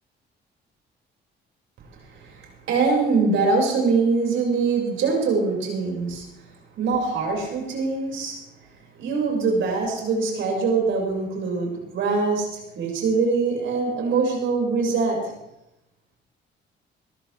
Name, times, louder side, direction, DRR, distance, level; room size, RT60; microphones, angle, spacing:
voice 1, 2.1-6.2 6.8-8.4 9.0-15.3, right 4 dB, 75° right, -1 dB, 5.7 m, -23 dB
21.5 x 14.5 x 3.4 m, 0.87 s
cardioid pair, 90°, 20 cm